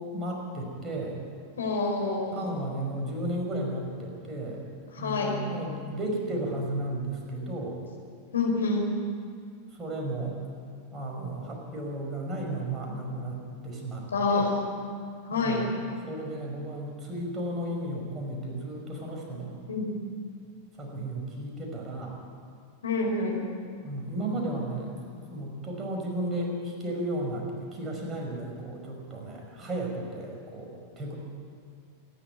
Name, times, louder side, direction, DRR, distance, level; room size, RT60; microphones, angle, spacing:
voice 1, 0.1-1.2 2.3-4.6 5.0-7.8 9.7-10.4 10.9-13.4 13.6-14.5 15.3-15.6 16.0-19.6 20.8-22.2 23.8-31.2, right 1 dB, 20° right, 0 dB, 5.5 m, -34 dB
voice 2, 1.6-2.3 4.9-5.3 8.3-8.8 14.1-14.5 15.2-15.6 19.7-19.9 22.8-23.4, left 3 dB, 70° left, 0 dB, 5.0 m, -27 dB
26.5 x 11.5 x 9.5 m, 2.2 s
figure-of-eight pair, 90°, 0 cm